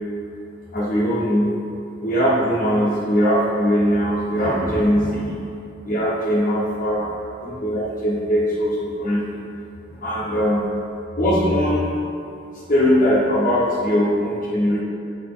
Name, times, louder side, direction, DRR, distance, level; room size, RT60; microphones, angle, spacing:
voice 1, 0.7-1.5 2.0-5.4 5.8-7.1 7.4-9.4 9.9-10.6 11.2-11.9 12.5-14.8, equal, 45° left, -6 dB, 1.2 m, -20 dB
7.2 x 4.0 x 3.8 m, 2.6 s
head